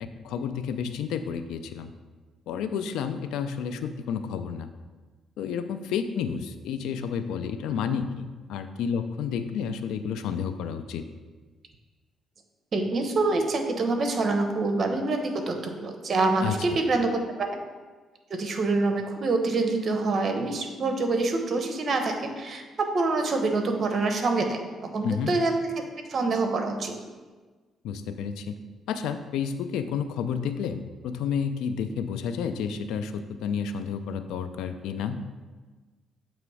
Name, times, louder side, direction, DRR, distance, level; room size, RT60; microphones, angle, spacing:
voice 1, 0.2-1.9 2.5-4.7 5.4-11.0 16.4-16.6 25.0-25.4 27.8-28.6 28.9-35.2, left 7 dB, 90° left, 10 dB, 0.4 m, -30 dB
voice 2, 12.7-17.5 18.3-24.6 24.9-25.5 26.1-26.9, right 3 dB, 50° right, 5 dB, 0.9 m, -26 dB
7.6 x 3.0 x 4.8 m, 1.3 s
cardioid pair, 90°, 0 cm